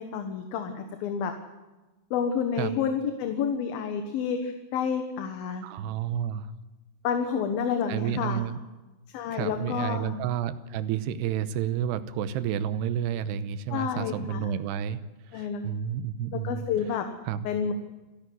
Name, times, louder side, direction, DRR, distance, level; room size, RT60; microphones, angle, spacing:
voice 1, 0.0-1.3 2.1-5.7 7.0-8.5 9.1-10.2 13.7-14.5 15.3-15.6 16.3-17.1 17.4-17.7, left 7 dB, 70° left, 6 dB, 2.9 m, -29 dB
voice 2, 5.6-6.5 7.9-8.6 9.3-15.0 15.3-16.6 17.3-17.5, right 9 dB, 90° right, 13 dB, 3.0 m, -30 dB
28.0 x 11.5 x 9.4 m, 1.1 s
omnidirectional pair, 4.7 m